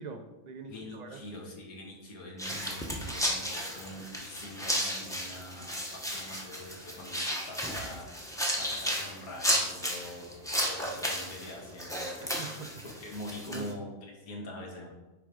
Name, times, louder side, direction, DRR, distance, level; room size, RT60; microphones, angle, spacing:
voice 1, 0.0-1.2 12.2-12.8 13.5-13.7, right 4 dB, 55° right, 6 dB, 0.4 m, -43 dB
voice 2, 0.7-12.4 13.0-14.9, left 1 dB, 80° left, -1 dB, 1.8 m, -44 dB
sound 1, 2.4-13.7, equal, 5° left, 0.7 m, -34 dB
8.1 x 3.6 x 4.9 m, 1.1 s
omnidirectional pair, 1.5 m